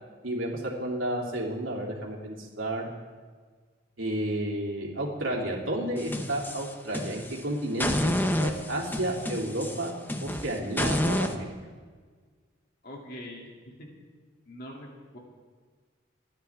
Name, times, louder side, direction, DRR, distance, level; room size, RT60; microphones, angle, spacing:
voice 1, 0.2-2.9 4.0-9.9 10.2-11.5, right 1 dB, 85° right, -1 dB, 3.0 m, -31 dB
sound 1, 6.0-7.4 7.8-11.3, left 1 dB, 10° left, 0.7 m, -29 dB
voice 2, 12.8-13.4 13.7-13.9 14.5-14.9 15.1-15.2, left 1 dB, 50° left, -1 dB, 2.6 m, -42 dB
29.5 x 10.0 x 3.6 m, 1.5 s
head